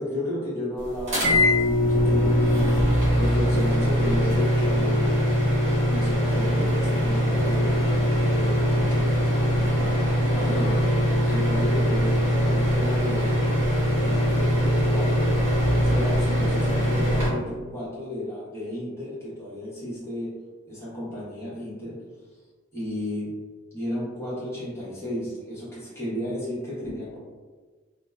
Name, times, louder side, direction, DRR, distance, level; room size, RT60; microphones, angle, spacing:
voice 1, 0.0-2.7 3.1-5.0 5.8-8.0 8.3-9.2 10.3-10.8 11.2-13.3 14.0-20.3 20.7-22.0 22.7-23.3 23.7-27.2, left 1 dB, 15° left, -10 dB, 0.9 m, -33 dB
sound 1, 1.1-17.3, equal, 35° right, 1.2 m, -22 dB
2.6 x 2.1 x 2.3 m, 1.4 s
head